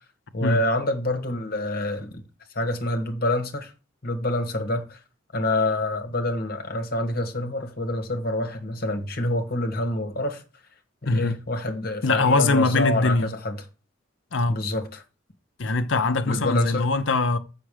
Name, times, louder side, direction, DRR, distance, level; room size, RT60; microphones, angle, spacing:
voice 1, 0.3-2.2 2.6-3.7 4.0-5.0 5.3-10.4 11.0-13.6 14.5-15.0 16.3-16.9, left 1 dB, 55° left, 1.6 m, -27 dB
voice 2, 11.0-11.4 12.0-13.3 14.3-14.6 15.6-17.4, left 3 dB, 75° left, 0.8 m, -22 dB
7.5 x 5.9 x 4.9 m
head